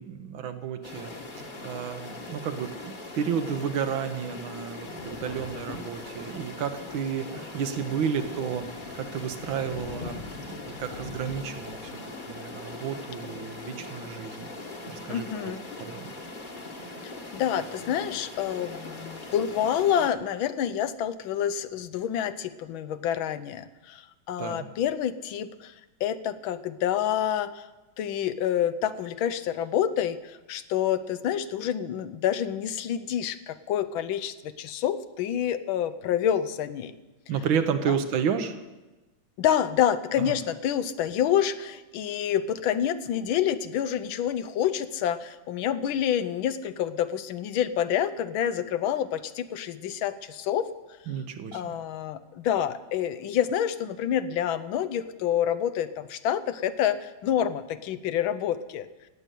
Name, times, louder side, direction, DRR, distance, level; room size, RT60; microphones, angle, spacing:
voice 1, 0.0-8.7 8.9-11.9 12.3-14.5 14.9-15.5 15.8-16.1 24.4-24.7 37.3-38.6 40.2-40.4 51.1-51.8, right 7 dB, 80° right, 9 dB, 1.8 m, -32 dB
sound 1, 0.8-20.1, left 2 dB, 25° left, 1.4 m, -41 dB
Thunder, 2.0-3.2 3.8-3.9 4.1-11.9, left 5 dB, 50° left, 0.8 m, -45 dB
voice 2, 15.1-15.6 17.0-25.7 26.0-27.7 28.0-36.9 37.9-38.0 39.4-50.7 51.5-58.9, left 10 dB, 80° left, 13 dB, 1.5 m, -28 dB
16.5 x 6.8 x 9.1 m, 1.1 s
omnidirectional pair, 2.2 m